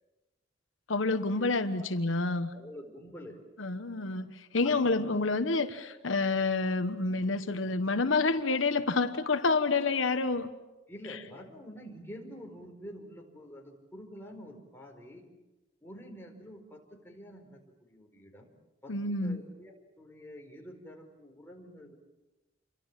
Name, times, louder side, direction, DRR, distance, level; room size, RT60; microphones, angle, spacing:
voice 1, 0.9-2.5 3.6-10.5 18.9-19.4, left 3 dB, 85° left, 9 dB, 1.2 m, -28 dB
voice 2, 2.5-3.4 4.6-5.2 10.9-15.3 15.8-18.5 18.8-22.0, equal, 10° left, 0 dB, 4.8 m, -47 dB
28.5 x 24.0 x 7.5 m, 1.0 s
head